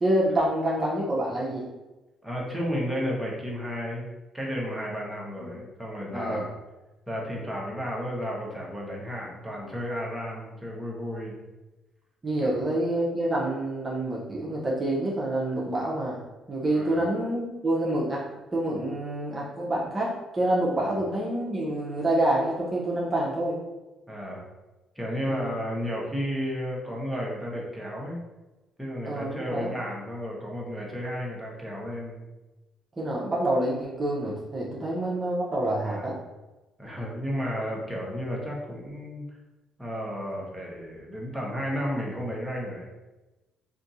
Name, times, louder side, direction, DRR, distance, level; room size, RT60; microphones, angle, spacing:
voice 1, 0.0-1.7 5.4-5.5 6.1-6.4 12.2-16.2 16.5-18.2 18.5-23.6 25.3-25.5 29.0-29.7 33.0-36.2, right 1 dB, 30° right, -5 dB, 0.8 m, -27 dB
voice 2, 2.2-6.5 7.1-11.4 12.4-12.6 16.7-17.0 20.8-21.0 24.1-24.4 24.9-28.2 28.8-32.2 35.9-36.1 36.8-39.2 39.8-42.9, equal, 5° right, -3 dB, 1.1 m, -33 dB
3.5 x 2.6 x 2.6 m, 1.1 s
supercardioid pair, 60°, 0 cm